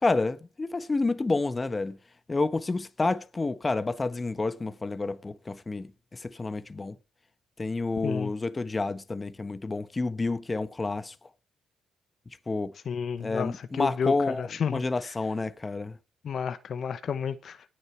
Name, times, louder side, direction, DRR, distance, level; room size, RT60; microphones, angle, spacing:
voice 1, 0.0-2.0 2.3-7.0 7.6-11.1 12.5-12.7 13.2-16.0, left 3 dB, 25° left, 1.1 m, -29 dB
voice 2, 12.9-14.8 16.2-17.6, left 7 dB, 55° left, 0.9 m, -31 dB
18.5 x 6.6 x 4.4 m
cardioid pair, 85°, 0 cm